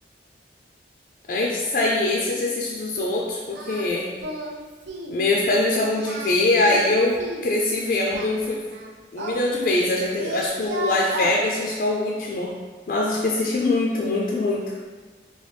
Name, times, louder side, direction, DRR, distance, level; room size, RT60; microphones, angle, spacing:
voice 1, 1.3-4.1 5.1-8.6 9.1-12.5 12.9-14.6, left 2 dB, 50° left, -2 dB, 0.3 m, -23 dB
Singing, 3.5-3.9 4.2-4.6 4.9-5.2 5.9-7.5 8.1-9.9 10.2-11.4, right 2 dB, 80° right, 0.4 m, -33 dB
3.1 x 2.8 x 3.2 m, 1.4 s
head